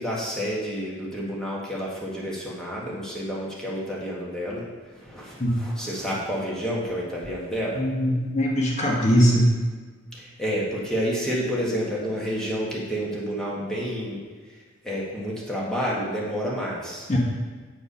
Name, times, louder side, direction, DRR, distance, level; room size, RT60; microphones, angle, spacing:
voice 1, 0.0-4.6 5.0-7.8 10.1-14.2 14.8-17.2, equal, 5° left, -5 dB, 1.5 m, -29 dB
voice 2, 7.7-9.5 17.1-17.2, equal, 35° left, -2 dB, 1.1 m, -21 dB
8.3 x 4.6 x 5.4 m, 1.4 s
head